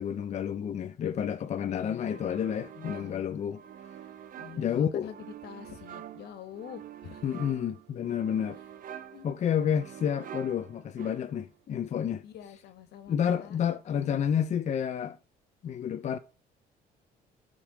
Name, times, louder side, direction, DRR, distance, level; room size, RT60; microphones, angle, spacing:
voice 1, 0.0-3.6 4.6-5.1 7.2-8.6 9.2-12.2 13.1-15.2 15.6-16.2, left 8 dB, 45° left, 0.7 m, -30 dB
voice 2, 1.8-2.2 2.7-3.3 4.4-7.2 9.1-9.3 12.2-13.6, left 9 dB, 75° left, 1.8 m, -46 dB
sound 1, 2.0-11.5, right 10 dB, 55° right, 1.0 m, -47 dB
14.5 x 5.3 x 5.1 m
cardioid pair, 110°, 17 cm